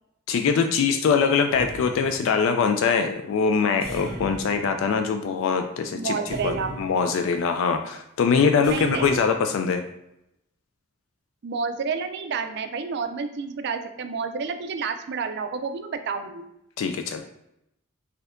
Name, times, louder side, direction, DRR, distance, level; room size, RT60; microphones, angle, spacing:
voice 1, 0.3-6.2 6.4-9.8 16.8-17.2, left 5 dB, 70° left, 6 dB, 0.3 m, -23 dB
sound 1, 1.5-2.8 3.8-5.5 6.3-7.4 8.6-9.5, right 1 dB, 5° left, 1.0 m, -38 dB
voice 2, 5.9-6.7 8.6-9.1 11.4-16.4, right 5 dB, 55° right, 8 dB, 0.4 m, -30 dB
4.1 x 2.7 x 2.5 m, 0.84 s
head